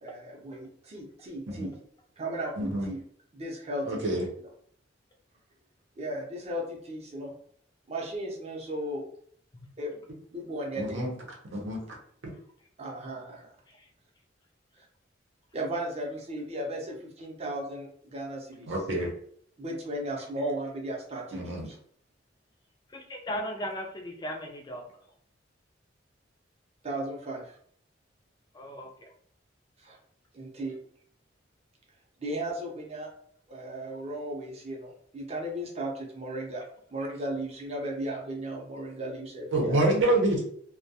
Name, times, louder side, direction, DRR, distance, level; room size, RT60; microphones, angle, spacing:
voice 1, 0.0-1.7 2.2-3.0 3.3-4.2 6.0-7.3 7.9-9.0 9.8-10.0 10.3-11.0 12.8-13.5 15.5-18.7 19.6-21.8 26.8-27.5 29.8-30.0 30.3-30.8 32.2-33.1 33.5-36.6 36.9-39.8, right 1 dB, 35° right, 0 dB, 0.6 m, -35 dB
voice 2, 2.6-2.9 3.8-4.3 10.7-11.1 11.5-11.8 18.7-19.1 21.3-21.6 39.5-40.4, right 1 dB, 80° right, -1 dB, 0.8 m, -27 dB
voice 3, 22.9-24.8 28.5-28.9, equal, 20° left, 2 dB, 0.4 m, -36 dB
2.3 x 2.1 x 2.7 m, 0.62 s
head